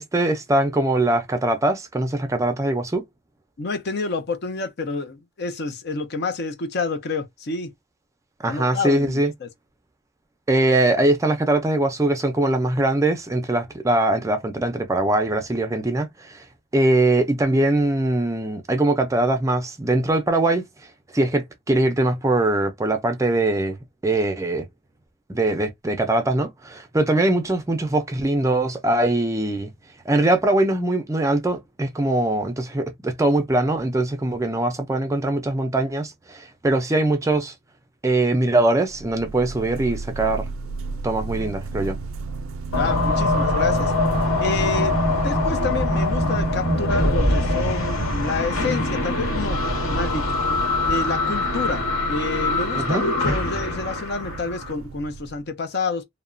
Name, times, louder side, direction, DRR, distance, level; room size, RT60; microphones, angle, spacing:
voice 1, 0.0-3.0 8.4-9.3 10.5-16.4 16.7-20.6 21.1-23.8 24.0-24.7 25.3-29.7 30.1-37.5 38.0-40.5 41.0-42.0 52.7-53.0, right 2 dB, 15° right, 0.4 m, -22 dB
voice 2, 3.6-7.7 8.4-9.5 42.8-43.9 44.4-45.0 45.2-49.6 49.9-50.4 50.8-56.0, left 3 dB, 55° left, 0.5 m, -28 dB
sound 1, 38.8-55.4, right 4 dB, 80° right, 0.4 m, -34 dB
sound 2, 42.7-54.7, left 2 dB, 90° left, 1.1 m, -23 dB
2.8 x 2.1 x 2.5 m
head